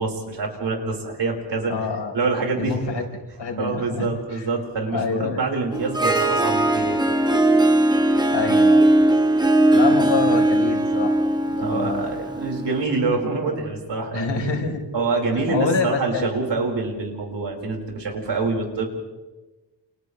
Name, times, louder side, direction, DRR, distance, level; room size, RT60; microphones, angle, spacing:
voice 1, 0.0-1.9 2.1-2.8 3.6-7.0 11.6-14.3 14.9-18.9, right 3 dB, 80° right, 0 dB, 5.0 m, -26 dB
voice 2, 1.7-2.1 2.6-3.0 3.4-4.5 4.9-5.4 8.3-8.9 9.7-11.3 11.6-12.1 14.1-14.8 15.3-16.3, left 4 dB, 90° left, 1 dB, 4.2 m, -26 dB
Harp, 5.7-12.8, right 1 dB, 10° right, 1.3 m, -19 dB
29.5 x 29.0 x 3.3 m, 1.2 s
wide cardioid pair, 175°, 42 cm